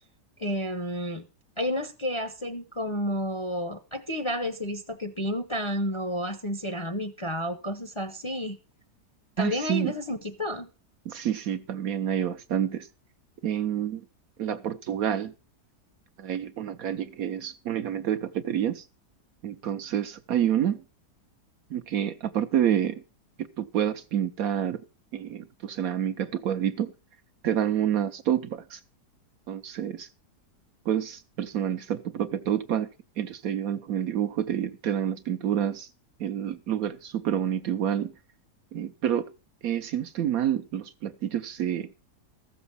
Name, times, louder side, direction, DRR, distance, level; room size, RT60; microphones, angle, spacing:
voice 1, 0.4-1.2 1.6-8.6 9.4-10.7, equal, 25° left, 0.7 m, -31 dB
voice 2, 9.4-9.9 11.0-12.9 13.4-14.0 14.4-15.3 16.2-18.9 19.4-20.8 21.7-23.0 23.4-24.8 25.1-26.9 27.4-28.8 29.5-30.1 30.9-32.9 33.2-35.9 36.2-38.1 38.7-39.3 39.6-41.9, right 10 dB, 65° right, 1.1 m, -28 dB
14.5 x 7.0 x 5.5 m
omnidirectional pair, 1.8 m